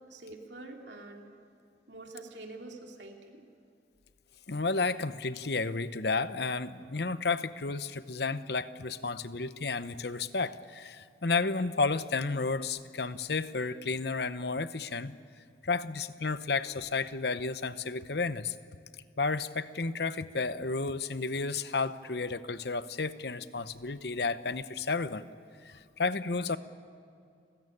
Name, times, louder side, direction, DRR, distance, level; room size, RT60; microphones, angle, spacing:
voice 1, 0.1-1.2 1.9-3.4 25.7-25.8, right 2 dB, 75° right, 2 dB, 2.7 m, -46 dB
voice 2, 4.5-15.1 15.6-18.5 19.2-25.2 25.6-26.6, left 4 dB, 60° left, 13 dB, 0.9 m, -32 dB
29.5 x 16.0 x 10.0 m, 2.4 s
head